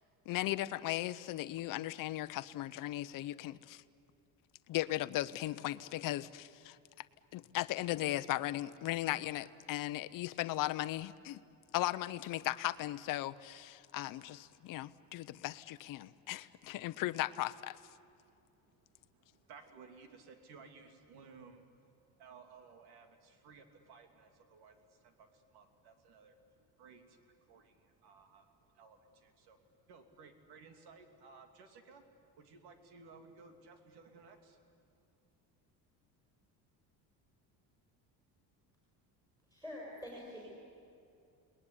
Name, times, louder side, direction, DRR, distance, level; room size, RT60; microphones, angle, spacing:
voice 1, 0.3-3.8 4.7-6.8 7.3-11.4 11.7-17.8, left 15 dB, 55° left, 13 dB, 0.8 m, -37 dB
voice 2, 18.2-21.6 22.2-29.6 29.9-32.0 32.3-34.6, right 5 dB, 75° right, 6 dB, 3.2 m, -58 dB
voice 3, 39.5-40.4, left 1 dB, 10° right, -3 dB, 6.7 m, -45 dB
30.0 x 20.0 x 9.9 m, 2.5 s
cardioid pair, 155°, 39 cm